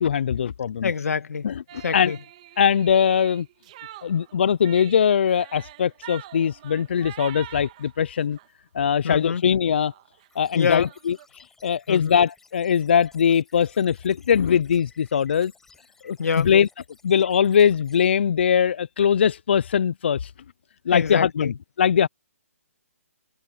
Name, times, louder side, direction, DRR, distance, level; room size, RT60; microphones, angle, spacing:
voice 1, 0.0-0.9 1.4-1.6 1.9-2.1 2.6-3.5 4.0-8.4 8.7-9.9 10.4-15.5 16.0-16.7 17.0-20.3 20.9-22.1, left 8 dB, 45° left, 0.4 m, -21 dB
voice 2, 0.8-1.5 1.8-2.2 9.0-9.4 10.5-10.9 11.9-12.2 16.2-16.5 20.9-21.5, left 6 dB, 75° left, 1.9 m, -25 dB
sound 1, 1.7-8.5 8.9-9.3 9.5-9.6 9.8-11.3, right 15 dB, 25° right, 1.7 m, -44 dB
sound 2, 10.3-18.1, left 4 dB, 5° left, 7.9 m, -56 dB
hypercardioid pair, 170°, 8 cm